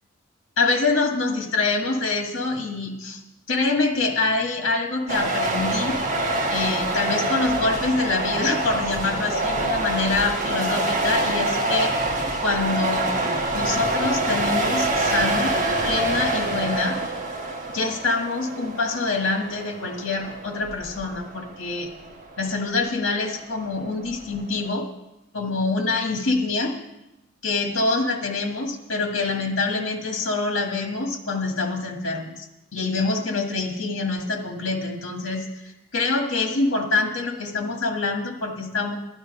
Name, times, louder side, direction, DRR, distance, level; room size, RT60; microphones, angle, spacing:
voice 1, 0.6-3.2 3.5-6.0 6.5-11.9 12.4-15.5 15.8-17.0 17.7-21.9 22.4-24.9 25.3-26.8 27.4-32.4 32.7-35.5 35.9-39.0, left 3 dB, 70° left, 2 dB, 1.8 m, -25 dB
sound 1, 5.1-24.7, right 2 dB, 40° right, 1.3 m, -26 dB
13.0 x 10.0 x 5.4 m, 0.97 s
head